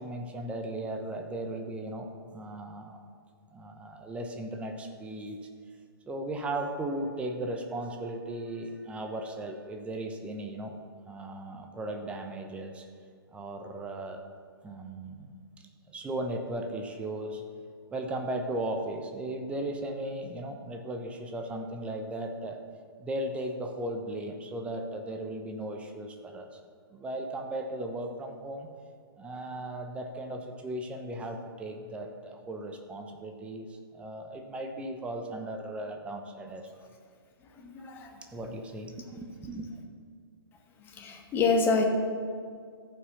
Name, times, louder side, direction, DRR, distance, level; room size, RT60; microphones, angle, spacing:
voice 1, 0.0-3.0 3.5-5.5 6.1-10.8 11.1-12.8 13.3-14.2 14.6-17.4 17.9-22.6 23.0-26.5 26.9-28.7 29.2-36.7 38.3-39.7, right 1 dB, 10° right, 4 dB, 0.8 m, -36 dB
voice 2, 37.5-38.2 40.8-41.8, left 4 dB, 15° left, 3 dB, 1.4 m, -27 dB
14.0 x 5.7 x 6.9 m, 2.1 s
figure-of-eight pair, 125°, 13 cm